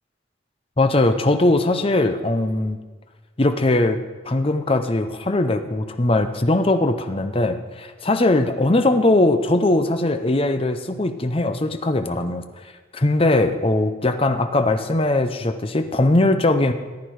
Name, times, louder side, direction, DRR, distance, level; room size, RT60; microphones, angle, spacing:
voice 1, 0.8-2.8 3.4-4.0 4.2-12.4 12.9-16.7, left 2 dB, 30° left, 8 dB, 0.7 m, -20 dB
14.5 x 9.7 x 4.8 m, 1.3 s
head